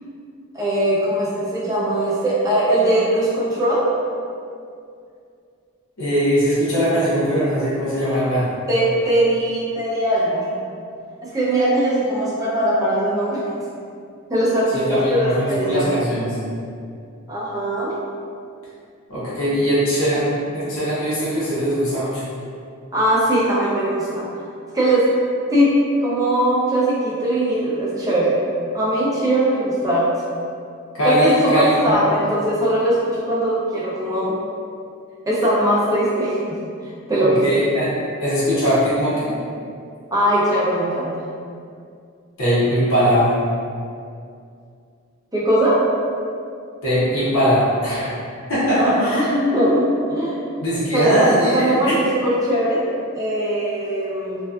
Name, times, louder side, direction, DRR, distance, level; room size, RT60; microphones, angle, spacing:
voice 1, 0.5-3.9 8.7-10.5 11.2-13.4 14.3-15.9 17.3-17.9 22.9-24.3 24.7-25.1 25.5-25.7 26.0-28.4 28.7-30.1 31.0-34.4 35.3-36.6 37.1-37.3 37.6-37.7 40.1-41.1 45.3-45.8 48.8-49.8 50.1-50.4 50.9-52.8 53.1-54.4, right 1 dB, 15° right, -7 dB, 0.4 m, -20 dB
voice 2, 6.0-8.5 14.7-16.4 19.1-22.2 30.9-32.0 37.2-38.0 38.2-39.3 42.4-43.3 46.8-48.2 48.5-49.3 50.6-52.0, equal, 70° left, -10 dB, 0.7 m, -20 dB
2.5 x 2.2 x 2.2 m, 2.4 s
head